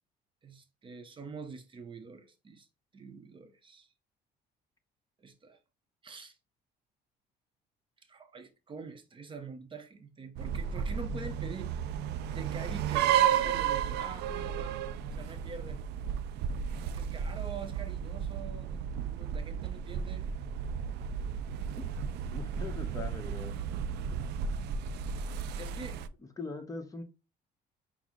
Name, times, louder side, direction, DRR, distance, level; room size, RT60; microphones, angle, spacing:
voice 1, 0.4-2.7 2.9-3.9 5.2-5.6 6.0-6.4 8.0-11.9 12.3-14.8 15.1-15.8 16.8-20.3 25.6-26.0, right 4 dB, 30° right, 0.6 m, -45 dB
sound 1, 10.4-26.1, right 8 dB, 80° right, 0.4 m, -33 dB
voice 2, 22.3-23.5 26.4-27.0, left 3 dB, 20° left, 0.8 m, -41 dB
5.8 x 2.0 x 3.6 m
cardioid pair, 110°, 17 cm